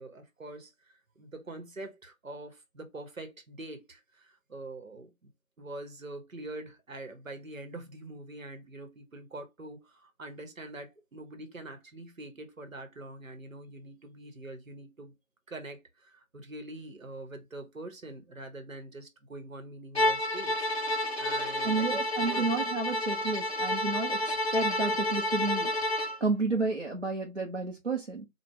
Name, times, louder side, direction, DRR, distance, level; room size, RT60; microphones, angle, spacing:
voice 1, 0.0-5.1 5.6-15.1 15.5-21.9 22.3-22.5 26.1-26.2, right 2 dB, 65° right, 1.2 m, -44 dB
Bowed string instrument, 19.9-26.2, left 1 dB, 50° left, 0.7 m, -30 dB
voice 2, 21.6-25.7 26.2-28.2, right 3 dB, 50° right, 0.8 m, -31 dB
4.7 x 2.4 x 3.3 m
figure-of-eight pair, 165°, 42 cm